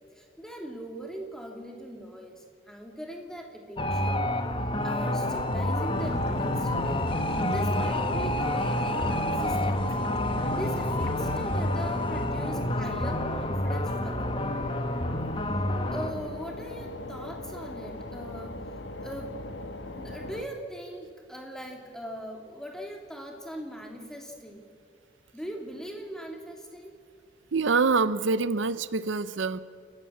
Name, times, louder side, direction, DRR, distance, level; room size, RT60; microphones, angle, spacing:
voice 1, 0.1-4.2 4.8-10.1 10.5-14.3 15.9-18.5 19.0-19.4 19.9-24.6 25.3-26.9, equal, 5° left, 2 dB, 2.5 m, -40 dB
sound 1, 3.8-16.1, left 1 dB, 25° left, 1.1 m, -29 dB
sound 2, 5.0-20.5, left 2 dB, 75° left, 1.3 m, -39 dB
sound 3, 5.9-12.9, equal, 55° left, 2.1 m, -36 dB
voice 2, 27.5-29.6, right 4 dB, 80° right, 15 dB, 0.6 m, -25 dB
28.5 x 14.5 x 8.5 m, 2.2 s
head